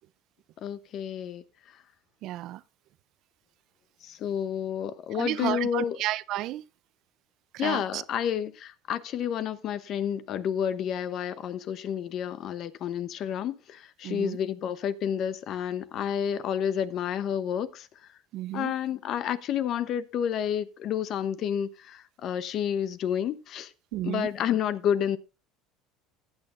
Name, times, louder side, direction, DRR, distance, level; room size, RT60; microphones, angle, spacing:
voice 1, 0.6-1.8 4.0-6.0 7.6-17.9 18.5-23.7 24.0-25.2, left 9 dB, 45° left, 0.9 m, -30 dB
voice 2, 2.2-2.6 5.1-6.6 7.5-8.0 14.0-14.4 18.3-18.7 23.9-24.3, right 15 dB, 55° right, 0.5 m, -32 dB
15.0 x 9.0 x 2.5 m
cardioid pair, 135°, 0 cm